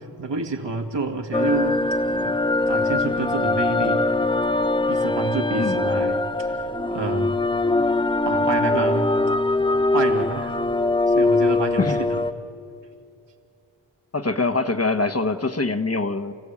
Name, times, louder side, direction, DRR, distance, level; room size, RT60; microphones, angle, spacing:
voice 1, 0.2-1.8 2.2-2.4 2.7-4.1 4.9-7.4 8.2-9.1 9.9-10.6 11.1-12.2, right 3 dB, 70° right, 1 dB, 2.3 m, -28 dB
sound 1, 1.3-12.3, left 2 dB, 10° left, 0.6 m, -22 dB
voice 2, 14.1-16.3, left 3 dB, 35° left, 7 dB, 1.1 m, -23 dB
30.0 x 15.5 x 8.5 m, 2.6 s
wide cardioid pair, 70°, 45 cm